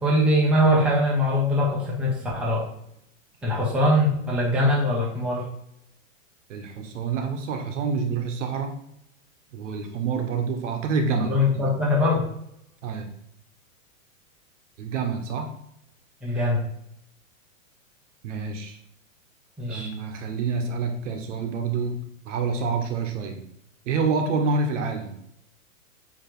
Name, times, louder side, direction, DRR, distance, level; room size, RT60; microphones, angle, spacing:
voice 1, 0.0-2.6 3.4-5.4 11.3-12.3 16.2-16.6 19.6-19.9, left 1 dB, ahead, -5 dB, 1.1 m, -22 dB
voice 2, 6.5-8.8 9.5-11.7 12.8-13.1 14.8-15.5 18.2-18.8 19.7-23.4 23.8-25.1, right 4 dB, 60° right, 5 dB, 1.5 m, -27 dB
8.8 x 3.4 x 4.7 m, 0.75 s
supercardioid pair, 170°, 42 cm